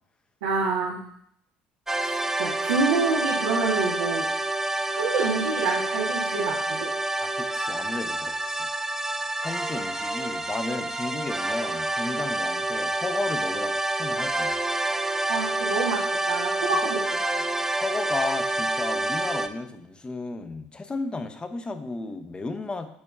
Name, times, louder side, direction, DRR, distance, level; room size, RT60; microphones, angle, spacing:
voice 1, 0.4-1.0 2.0-4.3 4.9-6.9 15.3-17.0, right 4 dB, 85° right, -5 dB, 1.1 m, -27 dB
sound 1, 1.9-19.5, right 2 dB, 10° right, 0.5 m, -28 dB
voice 2, 7.2-8.7 9.4-14.5 17.8-22.9, left 3 dB, 20° left, 8 dB, 0.8 m, -33 dB
8.5 x 5.1 x 2.4 m, 0.68 s
hypercardioid pair, 70°, 4 cm